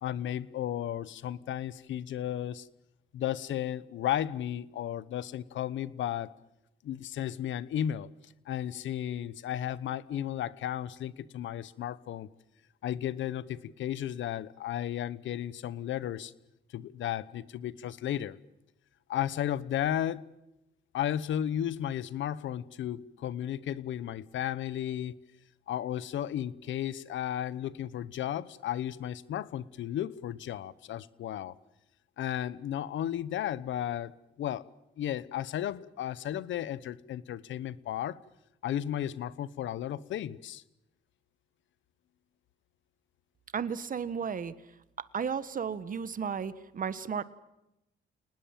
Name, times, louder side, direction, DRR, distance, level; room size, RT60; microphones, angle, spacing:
voice 1, 0.0-2.7 3.1-6.3 6.8-8.1 8.5-12.3 12.8-16.3 16.7-18.4 19.1-20.3 20.9-25.2 25.7-31.5 32.2-34.1 34.4-34.6 35.0-38.2 38.6-40.6, left 11 dB, 75° left, 18 dB, 1.0 m, -34 dB
voice 2, 43.5-44.5 45.1-47.2, right 6 dB, 45° right, 14 dB, 1.4 m, -33 dB
29.0 x 19.5 x 7.5 m, 0.87 s
cardioid pair, 90°, 20 cm